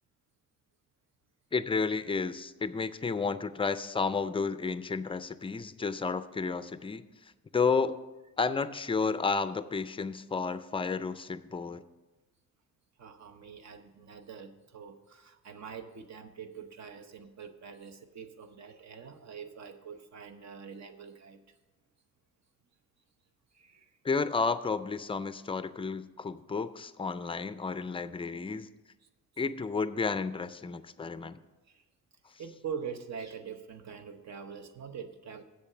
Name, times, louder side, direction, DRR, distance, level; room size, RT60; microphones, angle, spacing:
voice 1, 1.5-7.0 7.5-7.9 8.4-11.8 24.0-28.7 29.4-31.4, left 4 dB, 15° left, 13 dB, 0.3 m, -31 dB
voice 2, 13.0-21.4 23.5-24.0 29.0-29.1 31.7-31.8 32.4-35.4, right 7 dB, 60° right, 8 dB, 0.9 m, -44 dB
7.8 x 7.0 x 6.6 m, 1.1 s
wide cardioid pair, 125°, 32 cm